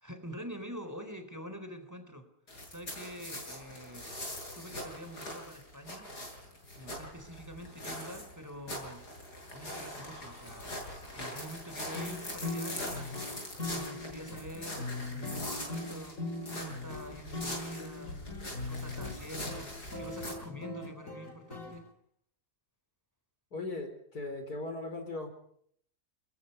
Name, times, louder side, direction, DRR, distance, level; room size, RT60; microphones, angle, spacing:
voice 1, 0.0-2.3 2.7-4.1 4.5-6.1 6.4-9.0 9.5-13.2 13.7-16.2 16.5-18.2 18.6-21.9, equal, 10° right, 8 dB, 3.7 m, -46 dB
sound 1, 2.5-20.3, left 1 dB, 90° left, 8.5 m, -42 dB
sound 2, 11.9-21.8, left 2 dB, 55° left, 4.1 m, -40 dB
voice 2, 23.5-25.3, left 2 dB, 75° left, 7 dB, 5.0 m, -38 dB
30.0 x 22.0 x 5.5 m, 0.65 s
omnidirectional pair, 1.7 m